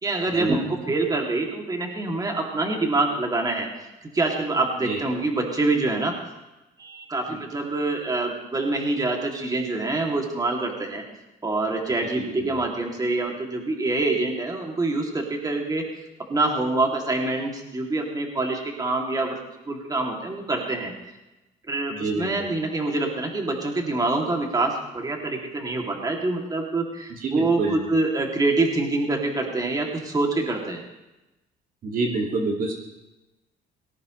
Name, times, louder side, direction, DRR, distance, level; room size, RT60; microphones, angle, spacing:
voice 1, 0.0-3.7 4.1-6.1 6.8-11.0 11.4-15.9 16.3-19.4 19.7-20.9 21.7-30.8, right 2 dB, 20° right, 1 dB, 2.8 m, -25 dB
voice 2, 12.1-12.6 21.9-22.5 27.1-27.9 31.8-32.7, right 3 dB, 55° right, 0 dB, 2.4 m, -27 dB
18.5 x 17.0 x 3.3 m, 1.0 s
cardioid pair, 110°, 17 cm